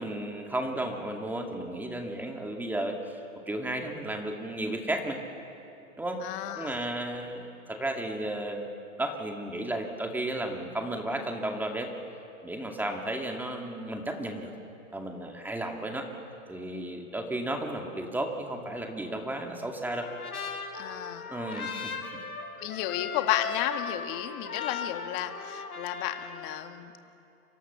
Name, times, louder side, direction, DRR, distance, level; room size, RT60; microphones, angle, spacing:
voice 1, 0.0-3.2 3.5-5.2 6.0-6.2 6.6-8.7 9.0-11.9 12.4-14.5 14.9-16.1 16.5-20.1 21.3-22.1, right 1 dB, 5° right, 3 dB, 2.2 m, -33 dB
voice 2, 6.2-6.8 20.7-21.3 22.6-26.9, left 13 dB, 35° left, 8 dB, 1.8 m, -33 dB
Trumpet, 19.9-26.6, left 5 dB, 90° left, 4.3 m, -38 dB
29.5 x 25.0 x 7.1 m, 2.8 s
hypercardioid pair, 130°, 43 cm